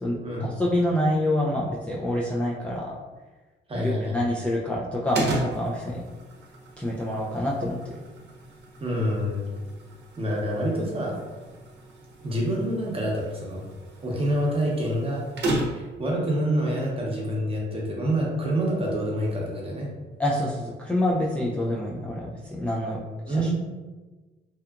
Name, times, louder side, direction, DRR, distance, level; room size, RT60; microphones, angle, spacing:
voice 1, 0.0-3.0 3.7-6.0 6.8-7.9 20.2-23.5, left 1 dB, 5° left, -6 dB, 0.3 m, -27 dB
voice 2, 3.7-4.3 8.8-9.4 10.2-11.2 12.2-13.6 14.0-15.2 15.6-19.9 23.3-23.5, equal, 30° right, -3 dB, 0.8 m, -27 dB
sound 1, 5.1-16.0, right 1 dB, 60° right, 0.7 m, -35 dB
2.8 x 2.4 x 2.3 m, 1.3 s
cardioid pair, 90°, 20 cm